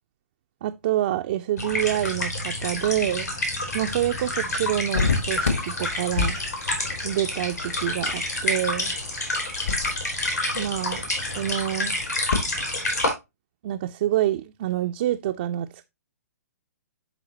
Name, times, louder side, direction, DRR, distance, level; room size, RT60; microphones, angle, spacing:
voice 1, 0.6-3.3 3.7-6.4 7.0-9.0 10.5-11.1 11.4-12.0 13.6-15.9, right 13 dB, 35° right, 0.3 m, -27 dB
sound 1, 1.6-13.1, left 2 dB, 75° left, 3.1 m, -28 dB
sound 2, 4.9-12.4, left 4 dB, 60° left, 1.8 m, -31 dB
11.0 x 3.8 x 2.9 m
figure-of-eight pair, 120°, 9 cm